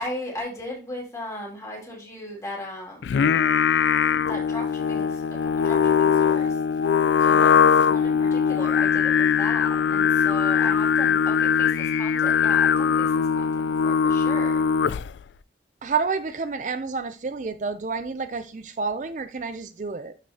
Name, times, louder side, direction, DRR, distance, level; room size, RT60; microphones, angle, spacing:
voice 1, 0.0-3.2 4.3-6.6 7.2-14.6, left 1 dB, 15° left, 2.5 m, -37 dB
Singing, 3.0-15.2, left 7 dB, 80° left, 0.3 m, -21 dB
voice 2, 15.8-20.2, right 5 dB, 45° right, 0.4 m, -29 dB
11.5 x 4.9 x 2.8 m
head